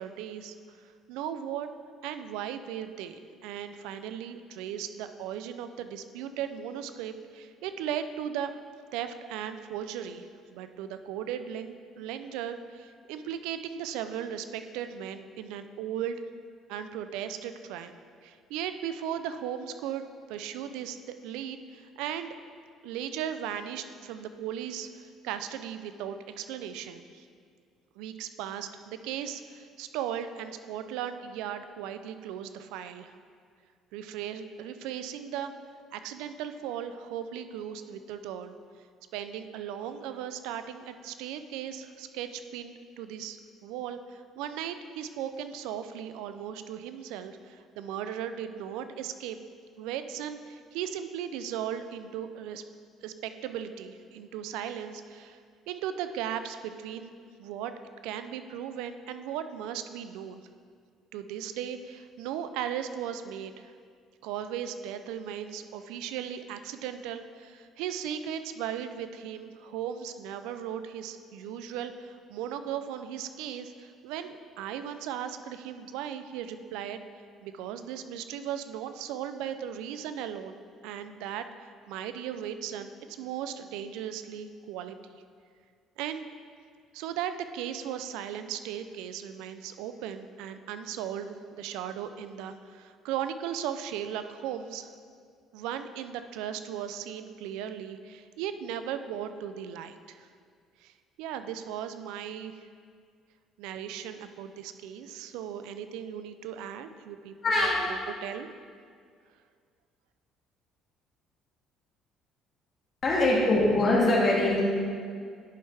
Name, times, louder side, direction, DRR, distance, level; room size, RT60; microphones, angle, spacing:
voice 1, 0.0-1.7 2.0-8.5 8.9-16.2 16.7-17.9 18.2-22.4 22.8-27.3 28.0-33.1 33.9-35.5 35.9-38.6 39.1-49.4 49.8-52.6 53.0-55.4 55.7-57.1 57.4-57.7 58.0-60.4 61.1-63.7 64.2-77.1 77.4-80.6 80.8-85.0 86.0-86.3 86.9-94.9 95.5-100.3 100.8-102.7 103.6-108.5, right 9 dB, 80° right, 10 dB, 0.4 m, -37 dB
voice 2, 107.4-107.8 113.0-114.6, left 2 dB, 45° left, -5 dB, 2.2 m, -23 dB
11.0 x 5.5 x 3.5 m, 2.1 s
supercardioid pair, 70°, 0 cm